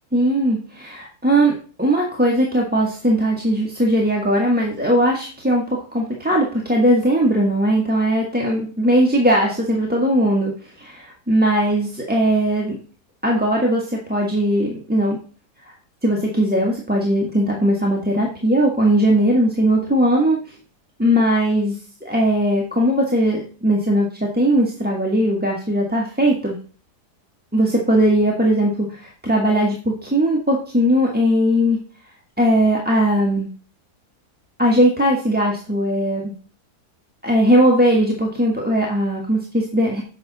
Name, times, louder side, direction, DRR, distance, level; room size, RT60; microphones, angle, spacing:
voice 1, 0.1-1.5 1.8-5.6 5.9-12.8 13.2-15.2 15.6-15.7 16.0-20.5 21.0-26.6 27.5-31.8 32.4-33.5 34.6-36.3 37.2-40.0, right 1 dB, 5° right, -2 dB, 1.2 m, -19 dB
8.1 x 5.9 x 4.0 m, 0.39 s
omnidirectional pair, 1.7 m